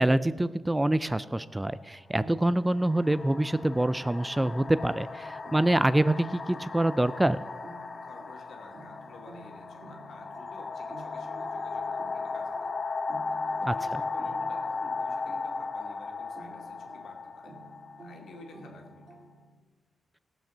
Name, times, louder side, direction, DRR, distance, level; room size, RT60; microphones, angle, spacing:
voice 1, 0.0-7.4 13.6-13.7, right 1 dB, 10° right, 15 dB, 0.3 m, -26 dB
sound 1, 1.3-1.4 2.4-19.0, left 4 dB, 35° left, 0.6 m, -36 dB
sound 2, 2.2-19.6, right 2 dB, 60° right, 2.4 m, -52 dB
voice 2, 8.0-12.7 13.3-17.6 18.0-19.2, left 3 dB, 75° left, 2 dB, 2.2 m, -51 dB
17.0 x 6.1 x 7.2 m, 1.3 s
wide cardioid pair, 145°, 0 cm